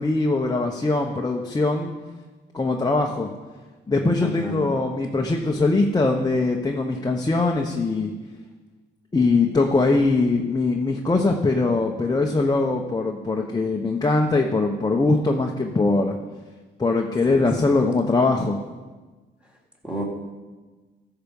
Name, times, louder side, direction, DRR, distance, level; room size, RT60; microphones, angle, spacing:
voice 1, 0.0-1.9 2.5-3.3 3.9-8.1 9.1-16.2 16.8-18.6, left 3 dB, 20° left, 1 dB, 1.0 m, -22 dB
voice 2, 4.2-4.6 17.3-17.7 19.8-20.0, equal, 5° right, -1 dB, 3.1 m, -31 dB
13.5 x 6.8 x 5.4 m, 1.3 s
cardioid pair, 90°, 20 cm